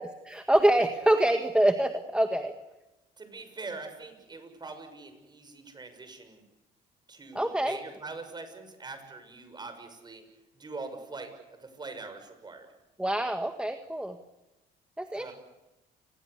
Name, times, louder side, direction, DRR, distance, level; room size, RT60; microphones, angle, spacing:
voice 1, 0.0-2.5 7.4-7.8 13.0-14.2 15.0-15.3, right 1 dB, 5° right, 6 dB, 1.7 m, -25 dB
voice 2, 3.2-6.4 7.1-10.2 10.5-12.7 15.2-15.3, right 3 dB, 25° right, 8 dB, 6.5 m, -43 dB
29.5 x 21.5 x 8.2 m, 1.0 s
cardioid pair, 110°, 17 cm